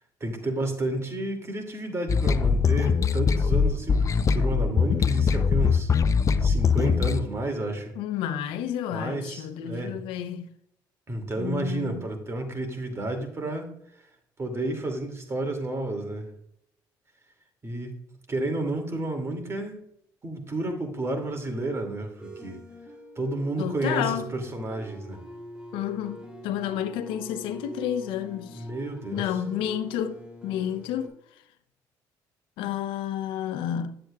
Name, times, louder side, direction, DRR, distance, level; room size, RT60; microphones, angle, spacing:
voice 1, 0.2-5.9 6.4-7.9 8.9-10.0 11.1-13.8 14.4-16.3 17.6-18.0 18.3-19.8 20.2-22.6 23.2-25.2 28.5-29.2, right 2 dB, 30° right, 2.4 m, -31 dB
sound 1, 2.1-7.2, left 6 dB, 40° left, 0.6 m, -22 dB
voice 2, 8.0-10.5 11.4-12.1 23.6-24.3 25.7-28.7 29.1-31.2 32.6-34.0, left 10 dB, 85° left, 0.7 m, -31 dB
sound 2, 22.2-31.1, right 2 dB, 10° right, 3.3 m, -44 dB
10.5 x 7.8 x 2.3 m
cardioid pair, 90°, 9 cm